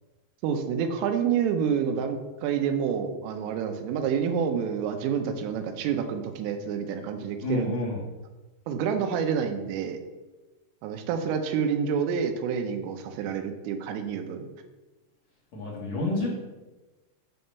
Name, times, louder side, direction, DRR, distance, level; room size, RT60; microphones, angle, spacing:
voice 1, 0.4-7.7 8.7-10.0 10.8-14.5, right 7 dB, 80° right, 7 dB, 3.5 m, -28 dB
voice 2, 7.4-8.0 15.5-16.3, left 2 dB, 40° left, -5 dB, 3.1 m, -29 dB
12.5 x 4.2 x 6.8 m, 1.1 s
omnidirectional pair, 5.8 m